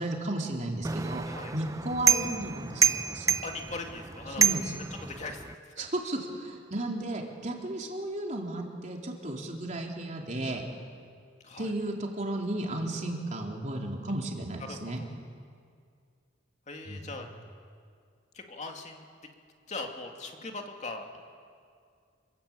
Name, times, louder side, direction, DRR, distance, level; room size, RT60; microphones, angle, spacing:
voice 1, 0.0-1.2 1.5-3.4 4.4-4.7 5.8-10.6 11.6-15.0 16.9-17.0, right 1 dB, 40° right, 0 dB, 3.6 m, -34 dB
sound 1, 0.8-5.5, right 6 dB, 15° right, 0.6 m, -28 dB
voice 2, 3.4-4.5 5.0-5.4 5.8-5.9 11.4-11.7 14.6-15.1 16.7-17.3 18.3-19.3 19.7-21.1, left 3 dB, 40° left, 3 dB, 2.6 m, -40 dB
28.0 x 21.5 x 8.7 m, 2.2 s
head